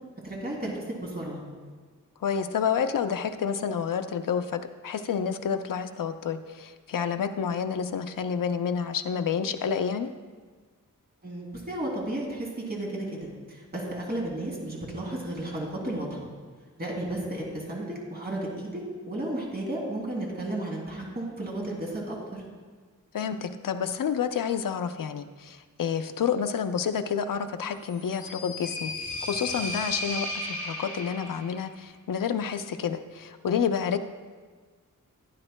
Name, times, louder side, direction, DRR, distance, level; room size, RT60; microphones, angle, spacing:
voice 1, 0.2-1.4 11.2-16.3 16.8-18.8 19.1-22.2, right 1 dB, 30° right, -4 dB, 2.8 m, -33 dB
voice 2, 2.2-10.1 23.1-28.9 29.3-34.0, left 7 dB, 80° left, 8 dB, 0.6 m, -29 dB
sound 1, 27.8-31.6, left 1 dB, 25° left, 2.6 m, -35 dB
16.0 x 9.9 x 2.2 m, 1.5 s
wide cardioid pair, 125°, 32 cm